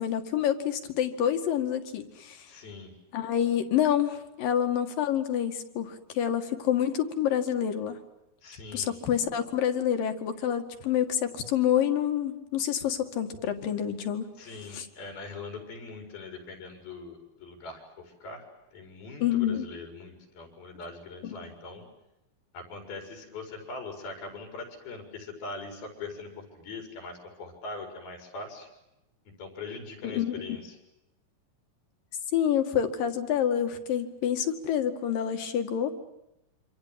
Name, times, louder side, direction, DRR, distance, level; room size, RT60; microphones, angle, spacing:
voice 1, 0.0-2.5 3.1-8.0 8.7-14.3 14.7-14.9 19.2-19.7 21.2-21.4 30.1-30.4 32.3-35.9, left 9 dB, 70° left, 7 dB, 3.7 m, -27 dB
voice 2, 2.5-2.9 8.4-8.9 14.4-18.5 18.7-21.9 22.5-28.7 29.4-30.8, left 3 dB, 85° left, 5 dB, 7.1 m, -42 dB
27.5 x 26.0 x 7.6 m, 0.91 s
omnidirectional pair, 4.2 m